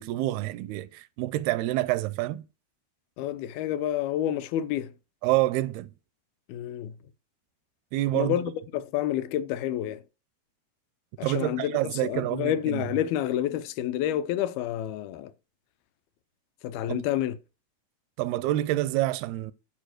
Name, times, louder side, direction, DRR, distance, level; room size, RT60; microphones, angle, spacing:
voice 1, 0.0-2.4 5.2-5.9 7.9-8.4 11.2-12.9 16.9-17.0 18.2-19.5, right 16 dB, 85° right, 2.5 m, -27 dB
voice 2, 3.2-4.9 6.5-6.9 8.1-10.0 11.2-15.3 16.6-17.4, left 11 dB, 80° left, 2.5 m, -29 dB
11.5 x 5.0 x 6.4 m
omnidirectional pair, 4.5 m